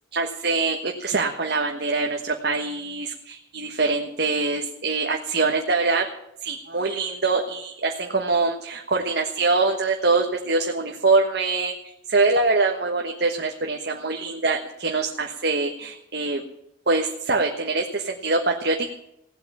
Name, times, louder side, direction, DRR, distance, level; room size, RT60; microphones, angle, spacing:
voice 1, 0.1-6.0 6.4-16.4 16.9-18.9, right 3 dB, 60° right, 2 dB, 1.4 m, -24 dB
17.5 x 8.4 x 8.5 m, 0.79 s
head